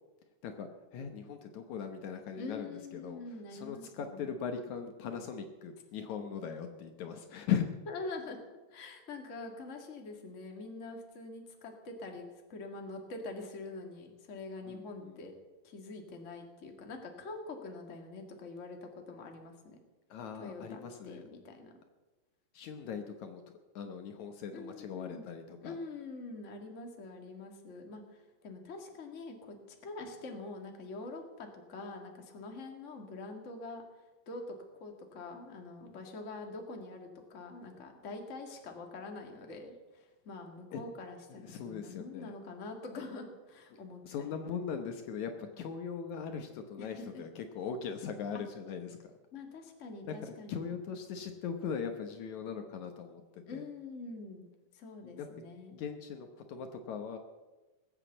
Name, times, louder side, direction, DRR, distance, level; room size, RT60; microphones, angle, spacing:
voice 1, 0.4-3.2 3.5-7.7 14.7-15.2 20.1-21.2 22.5-25.8 40.7-40.8 41.4-42.3 44.0-49.1 50.1-50.2 50.5-53.2 53.5-53.6 55.1-55.3 55.7-57.2, left 7 dB, 70° left, 6 dB, 2.2 m, -39 dB
voice 2, 2.4-4.3 7.9-15.3 15.6-19.8 20.4-21.7 24.5-25.3 25.6-29.6 29.8-33.8 34.3-34.5 34.8-44.6 46.8-47.3 48.3-48.4 49.3-50.7 53.5-54.4 54.7-55.7, left 3 dB, 30° left, 3 dB, 1.8 m, -45 dB
20.0 x 8.2 x 7.9 m, 1.2 s
omnidirectional pair, 3.7 m